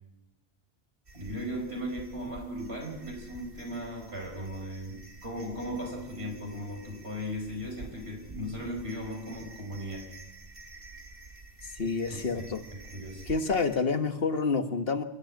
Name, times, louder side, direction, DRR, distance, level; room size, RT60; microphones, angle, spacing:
sound 1, 1.1-13.8, right 3 dB, 65° right, 2.6 m, -49 dB
voice 1, 1.1-10.1 12.1-13.2, equal, 85° right, 2 dB, 5.5 m, -37 dB
voice 2, 11.7-12.6 13.3-15.0, left 4 dB, 70° left, 7 dB, 1.6 m, -28 dB
27.5 x 13.0 x 8.7 m, 0.90 s
omnidirectional pair, 1.0 m